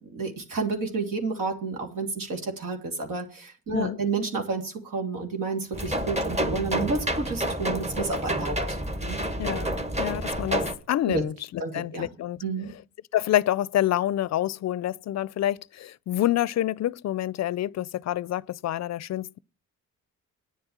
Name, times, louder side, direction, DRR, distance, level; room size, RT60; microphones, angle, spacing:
voice 1, 0.0-9.2 11.0-11.2 11.6-12.1 12.4-12.7, right 4 dB, 75° right, 3.1 m, -30 dB
sound 1, 5.7-10.7, right 1 dB, 20° right, 1.7 m, -29 dB
voice 2, 9.4-9.7 10.0-12.4 13.1-19.4, left 13 dB, 50° left, 0.5 m, -27 dB
9.6 x 7.9 x 7.3 m
supercardioid pair, 60°, 34 cm